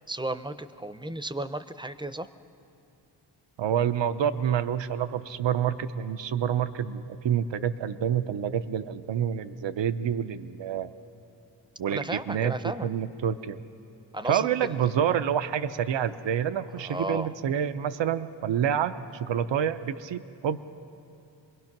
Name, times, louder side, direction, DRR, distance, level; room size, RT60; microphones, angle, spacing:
voice 1, 0.1-2.3 11.9-12.9 14.1-14.5 16.8-17.3, right 1 dB, 10° right, 12 dB, 0.5 m, -34 dB
voice 2, 3.6-10.9 11.8-12.5 12.8-13.6 14.3-20.6, right 9 dB, 85° right, 12 dB, 0.7 m, -28 dB
26.5 x 21.5 x 6.0 m, 2.6 s
wide cardioid pair, 140°, 43 cm